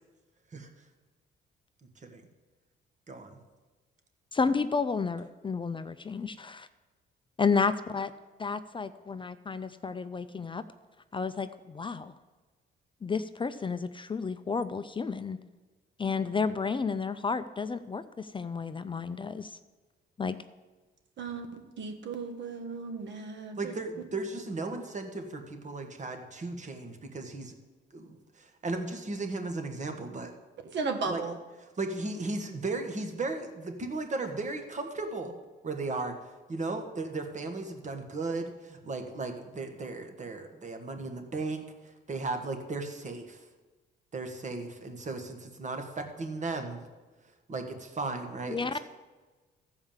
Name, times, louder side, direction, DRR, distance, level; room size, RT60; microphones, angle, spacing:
voice 1, 2.0-2.3 3.1-3.4 23.6-27.5 27.9-30.3 31.1-31.2 31.8-35.3 35.6-36.1 36.5-43.4 44.1-46.8 47.5-48.8, right 3 dB, 35° right, 5 dB, 1.7 m, -36 dB
voice 2, 4.3-6.7 7.4-8.1 8.4-10.6 11.1-12.1 13.0-15.4 16.0-19.6 20.2-20.4 48.5-48.8, left 5 dB, 25° left, 12 dB, 0.5 m, -31 dB
voice 3, 21.2-23.7 30.6-31.4, right 4 dB, 65° right, 6 dB, 1.6 m, -35 dB
14.5 x 4.9 x 7.3 m, 1.3 s
cardioid pair, 90°, 20 cm